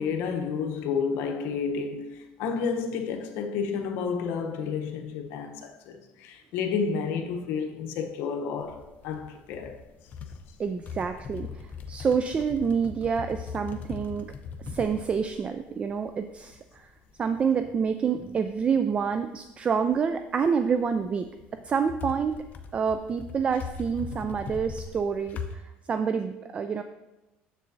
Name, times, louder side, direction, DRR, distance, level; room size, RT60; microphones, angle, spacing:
voice 1, 0.0-9.8, left 5 dB, 75° left, 0.8 m, -31 dB
sound 1, 8.6-19.4 19.7-20.5 20.8-25.5, left 6 dB, 45° left, 0.6 m, -41 dB
voice 2, 10.6-14.3 14.6-16.9 17.2-21.3 21.6-22.4 22.7-25.6 25.9-26.8, right 6 dB, 30° right, 0.3 m, -27 dB
7.4 x 6.7 x 2.7 m
cardioid pair, 115°, 4 cm